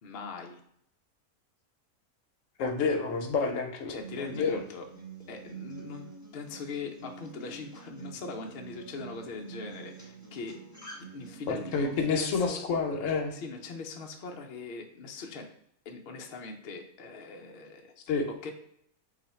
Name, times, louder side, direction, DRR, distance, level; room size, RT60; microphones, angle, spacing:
voice 1, 0.0-0.6 3.9-4.9 5.3-10.6 11.1-12.6 13.3-15.5 15.9-17.9 18.4-18.5, left 4 dB, 85° left, 2 dB, 0.5 m, -41 dB
voice 2, 2.6-3.9 4.2-4.6 11.7-13.3 18.1-18.3, left 4 dB, 65° left, 4 dB, 0.8 m, -28 dB
Acoustic guitar, 4.0-12.0, right 5 dB, 15° left, 0.9 m, -47 dB
3.3 x 2.4 x 4.1 m, 0.70 s
omnidirectional pair, 1.6 m